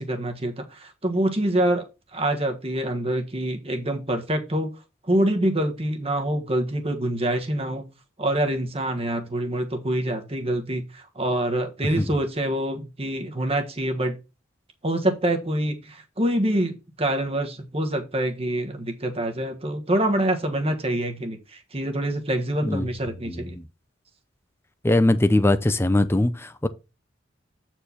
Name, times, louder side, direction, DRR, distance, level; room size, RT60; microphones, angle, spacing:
voice 1, 0.0-1.8 2.1-4.7 5.1-7.8 8.2-14.2 14.8-23.6, right 1 dB, 30° right, 1.4 m, -26 dB
voice 2, 24.8-26.7, left 1 dB, 10° left, 0.6 m, -21 dB
8.8 x 4.6 x 4.2 m
head